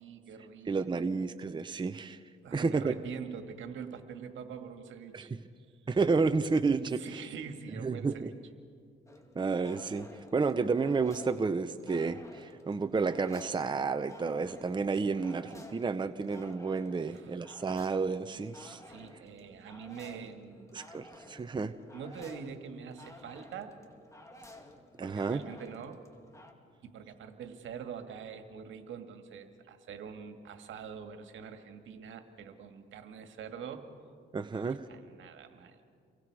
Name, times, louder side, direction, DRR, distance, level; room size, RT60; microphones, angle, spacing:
voice 1, 0.0-1.1 2.4-5.3 5.8-5.9 6.9-8.3 15.1-15.2 17.0-17.4 18.8-20.8 21.9-23.7 25.0-26.0 26.8-33.9 34.5-35.8, right 7 dB, 75° right, 7 dB, 2.0 m, -45 dB
voice 2, 0.7-2.2 2.5-2.9 5.1-5.4 5.9-7.3 7.8-8.3 9.3-18.8 20.7-21.7 25.0-25.4 34.3-34.8, right 4 dB, 25° right, 9 dB, 0.8 m, -31 dB
sound 1, 9.1-26.5, left 1 dB, 15° left, 2.4 m, -54 dB
29.5 x 23.5 x 4.8 m, 2.1 s
cardioid pair, 90°, 20 cm